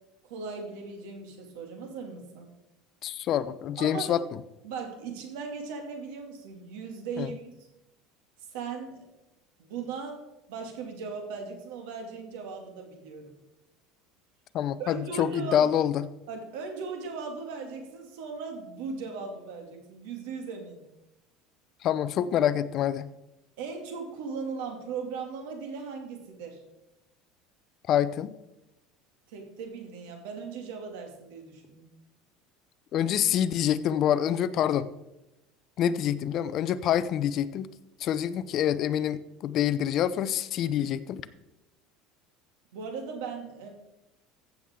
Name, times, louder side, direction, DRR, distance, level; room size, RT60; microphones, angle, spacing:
voice 1, 0.2-2.5 3.8-4.2 4.6-7.5 8.5-9.1 9.6-10.2 10.5-13.3 14.8-15.7 16.3-20.9 23.6-26.6 29.3-31.8 42.7-43.7, right 5 dB, 85° right, 3 dB, 2.4 m, -38 dB
voice 2, 3.0-4.2 7.2-7.3 14.5-16.0 21.8-23.1 27.9-28.3 32.9-34.9 35.8-37.7 38.0-41.2, left 10 dB, 45° left, 14 dB, 0.6 m, -26 dB
15.0 x 7.2 x 3.7 m, 0.95 s
cardioid pair, 140°, 0 cm